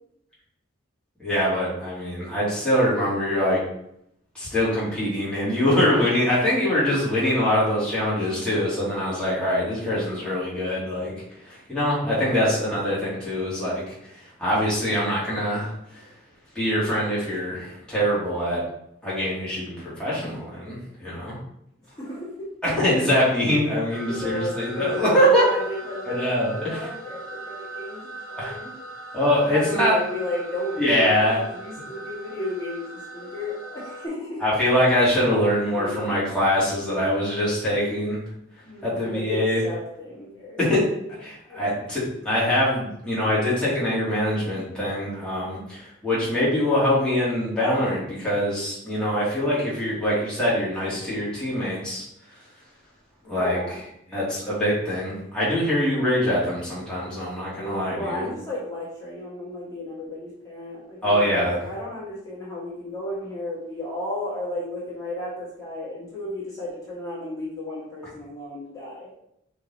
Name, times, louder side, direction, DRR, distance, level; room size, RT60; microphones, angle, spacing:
voice 1, 1.2-3.6 4.3-11.1 11.4-13.8 14.1-16.0 16.5-18.6 19.0-21.4 22.6-25.5 26.0-26.8 28.4-28.5 29.1-30.0 30.8-31.4 34.4-38.2 38.8-39.6 40.6-40.9 41.2-52.0 53.3-53.6 54.1-58.3 61.0-61.6, equal, 5° left, -9 dB, 2.6 m, -23 dB
voice 2, 12.3-12.6 21.9-22.5 24.0-28.7 29.4-34.4 35.4-36.1 38.6-40.6 41.0-41.1 41.5-41.7 53.2-53.8 57.5-69.1, left 1 dB, 20° left, -9 dB, 2.4 m, -34 dB
sound 1, 23.9-34.1, right 2 dB, 55° left, 1.5 m, -39 dB
5.6 x 4.2 x 4.2 m, 0.75 s
head